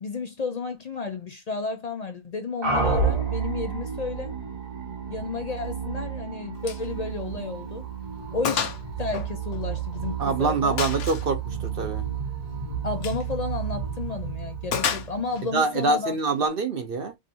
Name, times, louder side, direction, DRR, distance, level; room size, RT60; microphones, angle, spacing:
voice 1, 0.0-4.3 5.1-7.8 8.3-8.7 9.0-10.8 12.8-16.1, left 4 dB, 65° left, 0.4 m, -32 dB
sound 1, 2.6-15.5, right 6 dB, 65° right, 2.7 m, -31 dB
Gunshot gunfire, 6.6-6.9 7.2-7.3 7.8-7.9 8.4-8.8 9.1-10.1 10.8-11.3 12.9-13.2 14.7-15.4, left 7 dB, 80° left, 1.3 m, -29 dB
voice 2, 10.2-12.0 15.5-17.1, right 3 dB, 50° right, 0.8 m, -25 dB
4.9 x 2.6 x 2.7 m
omnidirectional pair, 1.5 m